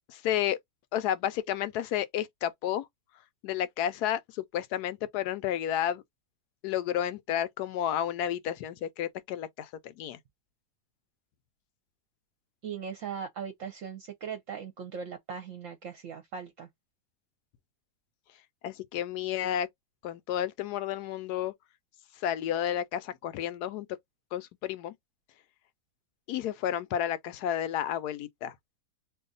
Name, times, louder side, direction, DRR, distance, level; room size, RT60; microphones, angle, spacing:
voice 1, 0.1-0.6 0.9-2.9 3.4-6.0 6.6-10.2 18.6-19.7 20.0-21.5 22.2-23.9 24.3-24.9 26.3-28.6, left 10 dB, 85° left, 1.1 m, -31 dB
voice 2, 12.6-16.7, right 7 dB, 65° right, 0.9 m, -39 dB
2.7 x 2.4 x 3.8 m
omnidirectional pair, 1.7 m